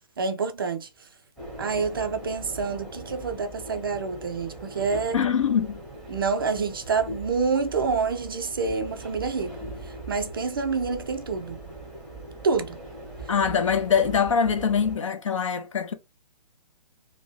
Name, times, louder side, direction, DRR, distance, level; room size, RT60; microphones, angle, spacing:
voice 1, 0.2-1.1 1.6-5.2 6.1-9.6 9.8-11.6 12.4-12.8, right 5 dB, 35° right, 0.3 m, -27 dB
sound 1, 1.4-15.0, right 1 dB, ahead, 0.9 m, -40 dB
voice 2, 5.1-5.8 13.3-15.9, left 7 dB, 50° left, 0.6 m, -23 dB
2.7 x 2.6 x 3.1 m
figure-of-eight pair, 130°, 21 cm